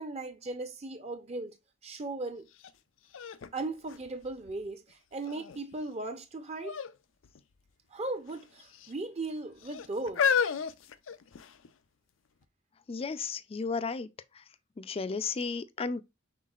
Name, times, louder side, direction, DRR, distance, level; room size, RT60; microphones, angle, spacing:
voice 1, 0.0-1.6 1.8-2.5 3.5-6.8 7.9-10.3, right 2 dB, 35° right, 0.6 m, -37 dB
sound 1, 2.6-2.7 3.1-4.7 5.3-5.8 6.6-7.0 7.2-7.4 8.3-8.9 9.6-11.7 12.4-12.5, left 7 dB, 85° left, 0.5 m, -32 dB
voice 2, 12.9-14.1 14.8-16.0, left 4 dB, 30° left, 0.4 m, -33 dB
5.7 x 3.7 x 2.4 m
head